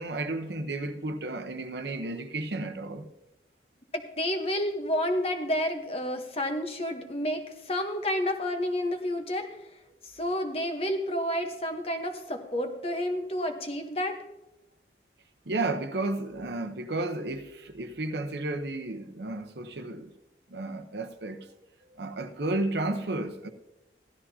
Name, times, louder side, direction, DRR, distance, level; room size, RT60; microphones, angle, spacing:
voice 1, 0.0-3.1 15.5-20.1 20.5-21.5 22.0-23.5, right 2 dB, 65° right, 0.9 m, -32 dB
voice 2, 3.9-9.6 10.2-14.2, left 1 dB, 35° left, 1.1 m, -30 dB
16.0 x 12.5 x 2.8 m
head